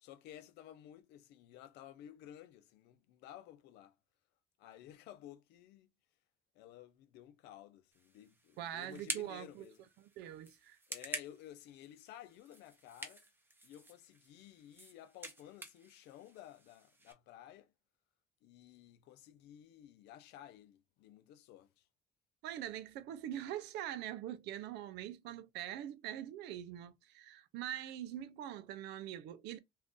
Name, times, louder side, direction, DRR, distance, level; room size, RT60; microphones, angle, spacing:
voice 1, 0.0-4.0 4.6-5.9 6.5-9.9 10.9-13.2 13.6-17.7 18.4-21.9, left 11 dB, 85° left, 0.6 m, -54 dB
sound 1, 7.9-17.1, right 2 dB, 15° right, 0.7 m, -49 dB
voice 2, 8.6-9.6 10.0-10.8 22.4-29.6, right 11 dB, 85° right, 0.5 m, -43 dB
2.6 x 2.5 x 3.6 m
cardioid pair, 110°, 17 cm